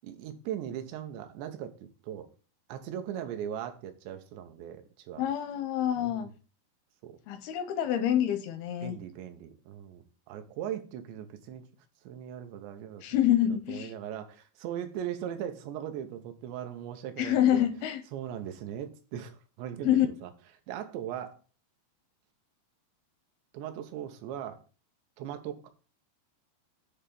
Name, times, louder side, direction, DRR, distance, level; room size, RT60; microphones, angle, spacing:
voice 1, 0.0-2.3 2.7-5.2 6.0-6.3 7.0-7.2 8.8-11.7 12.0-13.2 13.5-17.6 18.1-20.3 20.7-21.4 23.5-24.6 25.2-25.7, right 10 dB, 90° right, 3.2 m, -39 dB
voice 2, 5.2-6.3 7.3-9.0 13.0-13.9 17.2-18.0 19.8-20.1, left 11 dB, 85° left, 2.3 m, -26 dB
9.5 x 3.4 x 6.8 m
omnidirectional pair, 4.9 m